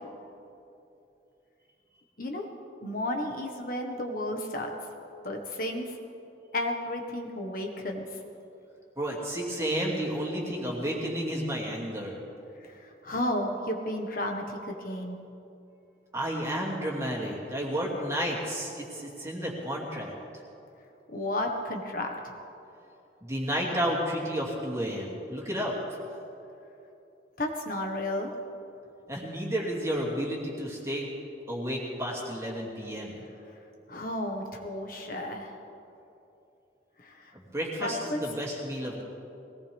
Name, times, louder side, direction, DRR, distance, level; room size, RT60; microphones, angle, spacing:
voice 1, 2.8-4.7 5.2-6.0 6.5-8.2 12.6-15.2 21.1-22.3 27.4-28.4 33.9-35.6 37.0-37.3 37.8-38.2, left 1 dB, 50° left, 2 dB, 1.5 m, -33 dB
voice 2, 9.0-12.2 16.1-20.1 23.2-25.7 29.1-31.1 31.5-33.2 37.3-39.0, equal, 15° right, -4 dB, 2.6 m, -31 dB
21.5 x 18.5 x 3.6 m, 2.8 s
head